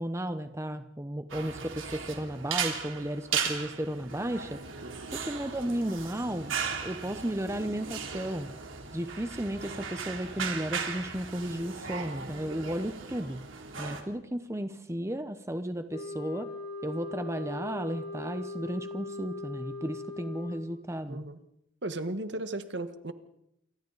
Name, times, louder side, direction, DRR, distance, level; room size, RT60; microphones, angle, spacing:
voice 1, 0.0-4.6 5.1-6.5 6.8-8.5 8.9-13.5 13.8-16.5 16.8-21.2, right 1 dB, 15° right, 9 dB, 0.8 m, -34 dB
sound 1, 1.3-14.0, right 6 dB, 90° right, 3.2 m, -37 dB
voice 2, 4.8-5.1 21.1-21.4 21.8-23.1, right 2 dB, 65° right, 10 dB, 1.5 m, -36 dB
sound 2, 15.9-20.8, left 3 dB, 55° left, 5.9 m, -40 dB
28.5 x 24.5 x 4.1 m, 0.77 s
head